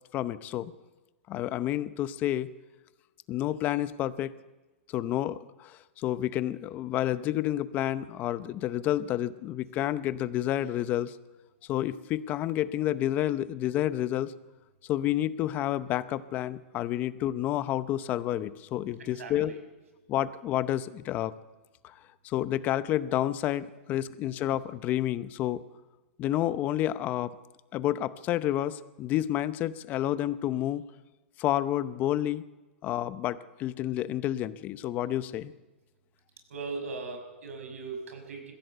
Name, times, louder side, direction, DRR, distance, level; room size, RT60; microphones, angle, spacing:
voice 1, 0.1-0.7 1.3-2.5 3.3-4.3 4.9-11.2 11.7-14.3 14.9-19.5 20.1-21.3 21.8-21.9 22.2-25.6 26.2-27.3 27.7-30.8 31.4-32.4 32.8-35.5, left 13 dB, 25° left, 15 dB, 0.7 m, -29 dB
voice 2, 19.0-19.6 36.5-38.5, right 4 dB, 85° right, 6 dB, 5.9 m, -39 dB
21.5 x 15.5 x 8.0 m, 1.1 s
hypercardioid pair, 160°, 7 cm